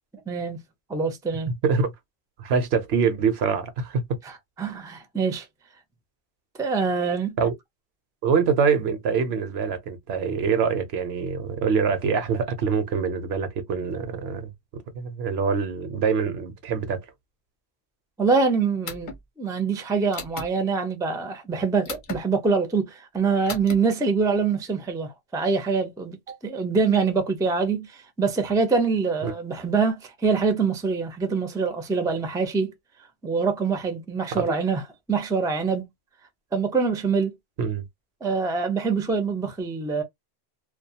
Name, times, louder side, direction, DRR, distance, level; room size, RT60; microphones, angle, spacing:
voice 1, 0.3-0.6 0.9-1.5 4.2-4.3 4.6-5.5 6.6-7.3 18.2-26.2 26.4-32.7 33.2-34.8 35.1-35.9 36.5-37.3 38.2-40.0, right 4 dB, 5° right, 0.4 m, -24 dB
voice 2, 1.5-1.9 2.4-4.2 7.4-7.5 8.2-14.5 14.9-17.0 26.3-26.4 29.2-29.3 34.4-34.5 37.6-37.8, right 6 dB, 75° right, 0.9 m, -24 dB
sound 1, 18.9-19.2 20.1-20.5 21.9-22.2 23.5-23.8, left 4 dB, 55° left, 0.8 m, -35 dB
2.3 x 2.3 x 2.7 m
omnidirectional pair, 1.1 m